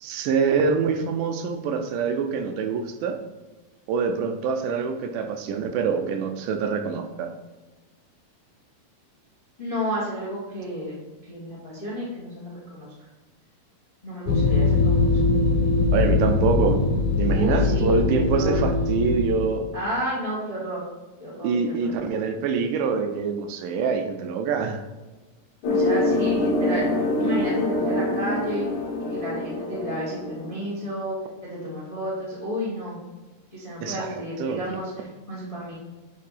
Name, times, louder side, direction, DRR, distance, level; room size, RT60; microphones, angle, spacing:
voice 1, 0.0-3.2 3.9-7.3 15.9-16.8 17.2-19.7 21.4-24.8 33.8-34.6, right 5 dB, 80° right, 6 dB, 2.1 m, -25 dB
voice 2, 9.6-12.9 14.0-15.1 17.3-18.0 18.4-18.6 19.7-20.8 21.2-21.9 25.7-26.9 27.2-28.7 29.1-31.2 31.4-33.0 33.5-35.7, equal, 50° left, -6 dB, 0.4 m, -31 dB
sound 1, 14.3-19.5, left 3 dB, 85° left, 2.4 m, -21 dB
sound 2, 25.6-30.7, left 1 dB, 70° left, 2.1 m, -25 dB
6.5 x 3.7 x 5.6 m, 1.2 s
omnidirectional pair, 3.8 m